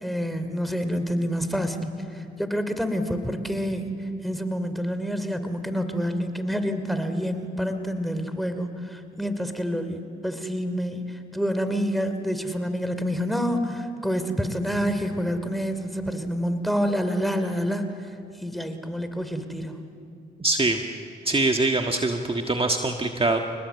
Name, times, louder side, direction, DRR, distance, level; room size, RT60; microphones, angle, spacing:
voice 1, 0.0-3.9 4.2-18.1 18.4-19.8, equal, ahead, 8 dB, 3.0 m, -28 dB
voice 2, 20.4-20.8 21.2-23.4, right 2 dB, 30° right, 3 dB, 1.6 m, -23 dB
27.5 x 19.5 x 8.3 m, 2.6 s
supercardioid pair, 55°, 19 cm